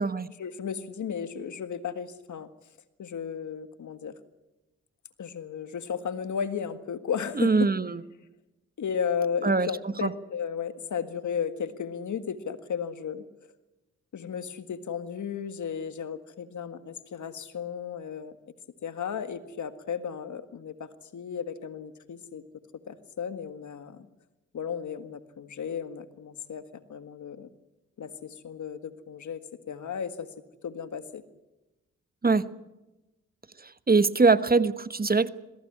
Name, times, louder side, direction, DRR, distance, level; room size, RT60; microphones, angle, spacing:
voice 1, 0.4-2.5 3.0-4.1 5.2-7.7 8.8-13.2 14.1-18.3 18.8-22.4 22.8-24.1 24.5-26.6 26.9-27.5 28.0-30.3 30.6-31.2, left 7 dB, 75° left, 10 dB, 1.8 m, -34 dB
voice 2, 7.4-8.0 9.4-9.7 10.0-10.1 32.2-32.5 33.9-35.3, right 4 dB, 30° right, 14 dB, 1.2 m, -22 dB
22.0 x 15.5 x 9.8 m, 0.99 s
cardioid pair, 55°, 30 cm